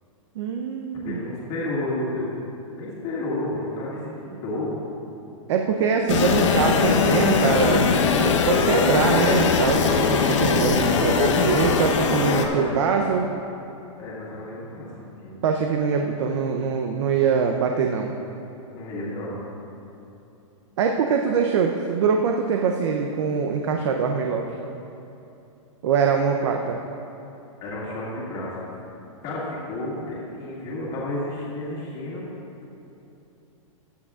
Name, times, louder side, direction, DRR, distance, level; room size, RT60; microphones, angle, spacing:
voice 1, 0.4-1.2 5.5-7.9 8.2-13.3 15.4-18.1 20.8-24.5 25.8-26.8, right 6 dB, 60° right, 3 dB, 0.7 m, -23 dB
voice 2, 1.0-2.3 2.8-4.8 12.0-13.0 14.0-15.4 18.7-19.4 27.6-28.5 29.2-32.3, left 1 dB, 30° left, -7 dB, 2.0 m, -31 dB
sound 1, 6.1-12.5, left 5 dB, 60° left, 1.0 m, -20 dB
15.5 x 9.9 x 2.4 m, 2.8 s
hypercardioid pair, 160°, 17 cm